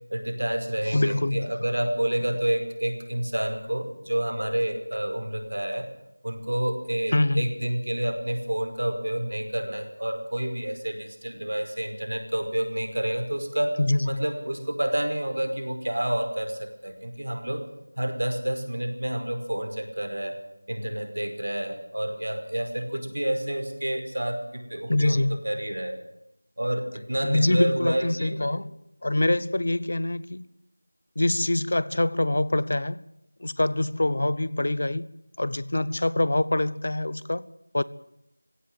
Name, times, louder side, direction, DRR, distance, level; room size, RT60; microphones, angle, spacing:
voice 1, 0.1-5.9 6.2-13.8 14.0-17.6 18.0-20.4 20.7-26.0 26.6-28.6, right 1 dB, 70° right, 5.3 m, -29 dB
voice 2, 0.9-1.5 7.1-7.5 13.8-14.2 24.9-25.4 27.2-28.7 29.0-30.5 31.2-33.0 33.4-35.0 35.4-37.5 37.7-37.8, left 1 dB, 40° left, 0.7 m, -24 dB
20.0 x 17.0 x 9.3 m
figure-of-eight pair, 175°, 0 cm